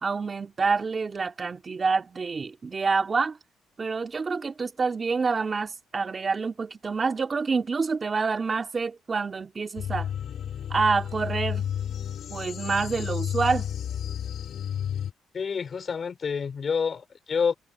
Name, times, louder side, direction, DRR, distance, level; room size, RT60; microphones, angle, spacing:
voice 1, 0.0-3.4 3.8-10.1 10.7-11.7 12.3-13.7, right 4 dB, 35° right, 2.5 m, -27 dB
sound 1, 9.8-15.1, left 9 dB, 65° left, 3.7 m, -31 dB
voice 2, 15.3-17.5, left 6 dB, 45° left, 5.2 m, -28 dB
cardioid pair, 90°, 0 cm